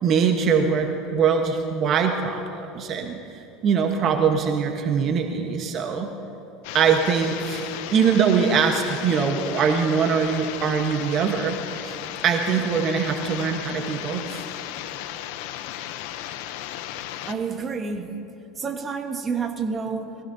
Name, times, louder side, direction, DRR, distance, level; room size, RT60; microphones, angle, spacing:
voice 1, 0.0-3.2 3.6-6.1 6.7-12.0 12.2-14.4, right 6 dB, 45° right, 4 dB, 1.1 m, -22 dB
sound 1, 6.6-17.3, left 12 dB, 70° left, 0.6 m, -35 dB
voice 2, 17.2-18.1 18.6-20.2, right 5 dB, 25° right, 4 dB, 1.3 m, -29 dB
22.5 x 16.5 x 2.7 m, 2.9 s
supercardioid pair, 120°, 0 cm